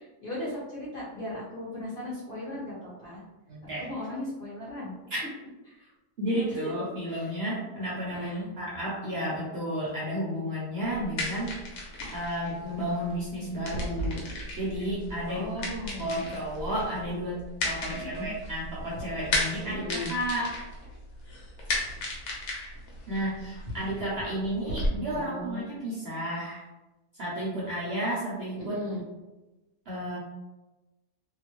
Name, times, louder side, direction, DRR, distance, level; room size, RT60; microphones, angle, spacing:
voice 1, 0.0-3.2 3.8-4.9 5.7-5.9 6.6-6.7 7.1-7.3 8.1-8.5 15.3-16.3 17.8-18.3 19.6-20.1 25.1-25.7 28.7-29.0, left 1 dB, 40° left, -9 dB, 1.0 m, -37 dB
voice 2, 3.5-3.9 5.1-5.2 6.2-11.5 12.1-14.2 14.5-15.5 16.0-20.5 23.1-26.6 27.2-28.8 29.9-30.2, equal, 55° right, -6 dB, 0.7 m, -32 dB
sound 1, 10.8-24.9, left 1 dB, 65° left, 1.2 m, -35 dB
2.7 x 2.3 x 3.0 m, 1.1 s
omnidirectional pair, 1.6 m